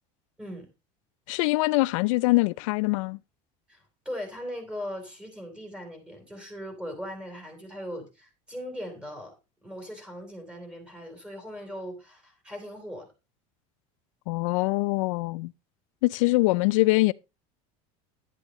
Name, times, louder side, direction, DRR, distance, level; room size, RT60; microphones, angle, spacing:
voice 1, 1.3-3.2 14.3-15.5 16.0-17.1, left 22 dB, 85° left, 0.4 m, -23 dB
voice 2, 3.7-9.3 9.6-13.1, equal, 5° right, 3.6 m, -39 dB
11.0 x 9.7 x 3.1 m
cardioid pair, 160°, 16 cm